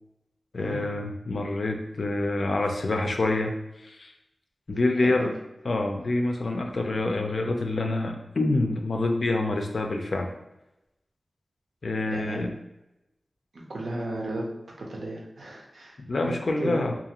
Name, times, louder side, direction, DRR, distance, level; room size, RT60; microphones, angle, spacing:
voice 1, 0.5-3.6 3.8-4.1 4.7-5.3 5.6-10.3 11.8-12.5 16.0-16.9, left 2 dB, 65° left, 4 dB, 0.4 m, -26 dB
voice 2, 5.0-5.3 12.1-12.4 13.5-14.5 14.8-16.8, right 1 dB, 90° right, -2 dB, 0.6 m, -34 dB
2.6 x 2.4 x 2.9 m, 0.90 s
wide cardioid pair, 95°, 0 cm